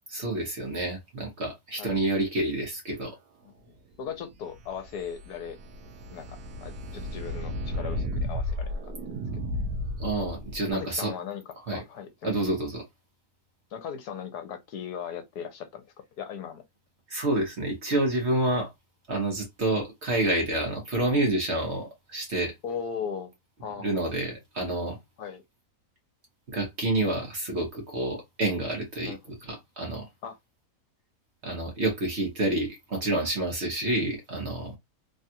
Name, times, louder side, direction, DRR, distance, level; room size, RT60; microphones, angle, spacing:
voice 1, 0.1-3.1 10.0-11.1 11.7-11.8 12.2-12.8 17.1-18.7 19.1-22.5 23.8-25.0 26.5-30.0 31.4-34.7, right 2 dB, 50° right, 1.0 m, -28 dB
voice 2, 4.0-5.6 6.1-8.9 10.7-12.3 13.7-15.8 16.2-16.6 22.6-23.3 23.6-23.9 25.2-25.4 29.0-29.2 30.2-30.4, left 7 dB, 70° left, 1.1 m, -37 dB
sound 1, 4.4-10.7, left 1 dB, 75° right, 1.2 m, -34 dB
3.3 x 2.4 x 2.7 m
omnidirectional pair, 1.8 m